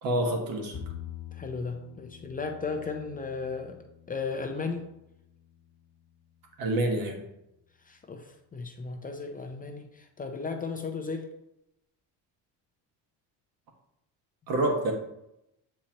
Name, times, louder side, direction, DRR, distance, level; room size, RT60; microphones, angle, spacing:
voice 1, 0.0-0.8 6.6-7.2 14.5-14.9, right 1 dB, 55° right, 2 dB, 1.4 m, -27 dB
Bowed string instrument, 0.7-7.1, left 9 dB, 55° left, 1.0 m, -47 dB
voice 2, 1.3-3.8 4.1-4.8 7.9-11.3, left 4 dB, 20° left, 4 dB, 0.5 m, -35 dB
7.4 x 4.3 x 2.9 m, 0.85 s
cardioid pair, 130°, 41 cm